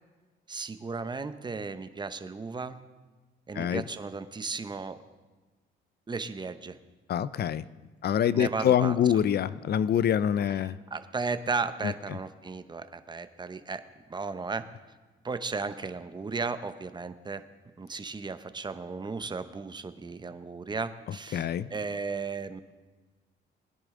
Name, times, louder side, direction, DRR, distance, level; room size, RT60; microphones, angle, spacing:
voice 1, 0.5-2.8 3.5-5.0 6.1-6.8 8.3-8.9 10.9-13.8 14.1-14.7 15.2-17.4 17.8-22.6, right 4 dB, 20° right, 11 dB, 0.8 m, -35 dB
voice 2, 7.1-7.7 8.0-10.8 11.8-12.2 21.3-21.7, left 9 dB, 55° left, 17 dB, 0.5 m, -25 dB
20.0 x 10.5 x 3.8 m, 1.3 s
cardioid pair, 90°, 20 cm